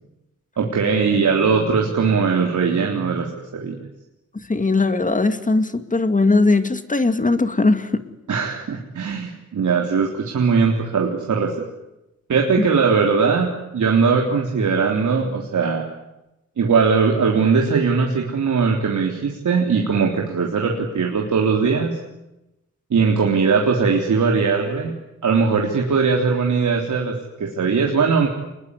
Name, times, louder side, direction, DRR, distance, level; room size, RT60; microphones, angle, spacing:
voice 1, 0.6-3.8 8.3-11.6 12.3-15.9 16.6-22.0 22.9-24.9 25.2-28.3, right 5 dB, 80° right, 1 dB, 3.7 m, -20 dB
voice 2, 4.5-8.0 12.6-12.7, left 3 dB, 25° left, 10 dB, 2.1 m, -19 dB
27.0 x 21.5 x 9.8 m, 0.94 s
wide cardioid pair, 115°, 29 cm